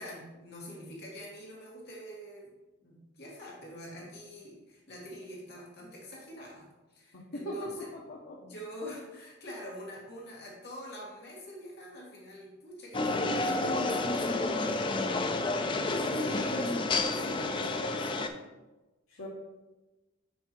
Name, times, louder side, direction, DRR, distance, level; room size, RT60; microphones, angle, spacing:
voice 1, 0.0-2.5 2.8-7.9 8.4-18.3, equal, 55° left, -4 dB, 2.0 m, -46 dB
voice 2, 7.1-8.4 16.1-16.6 19.1-19.3, equal, 80° left, -4 dB, 1.2 m, -40 dB
sound 1, 12.9-18.3, left 2 dB, 25° left, 0.4 m, -30 dB
5.8 x 4.6 x 4.5 m, 1.1 s
head